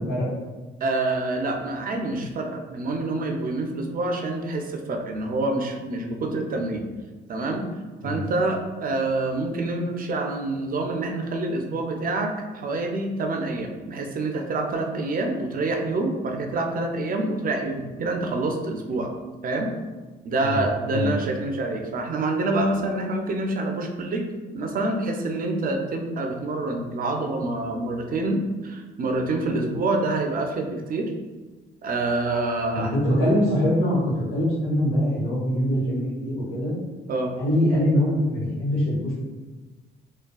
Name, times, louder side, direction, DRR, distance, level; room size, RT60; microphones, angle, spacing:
voice 1, 0.8-6.9 7.3-7.7 8.0-19.1 19.4-19.8 20.2-24.2 24.5-31.1 31.8-32.9 37.1-37.3, right 2 dB, 45° right, 3 dB, 0.4 m, -27 dB
voice 2, 32.7-36.7 37.4-39.2, equal, 85° left, -6 dB, 1.2 m, -23 dB
3.5 x 2.2 x 2.3 m, 1.3 s
cardioid pair, 90°, 20 cm